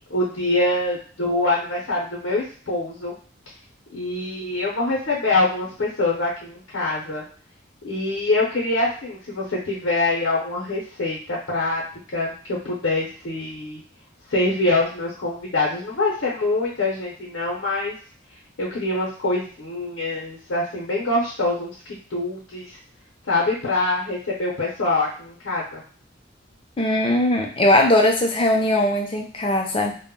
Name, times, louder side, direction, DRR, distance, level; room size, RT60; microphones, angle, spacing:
voice 1, 0.0-3.1 3.9-7.2 7.8-11.8 12.1-13.8 14.3-17.9 18.6-22.8 23.3-25.8, left 2 dB, 75° left, -4 dB, 0.6 m, -24 dB
voice 2, 26.8-29.9, left 1 dB, 30° left, 2 dB, 0.4 m, -19 dB
2.1 x 2.0 x 3.6 m, 0.42 s
head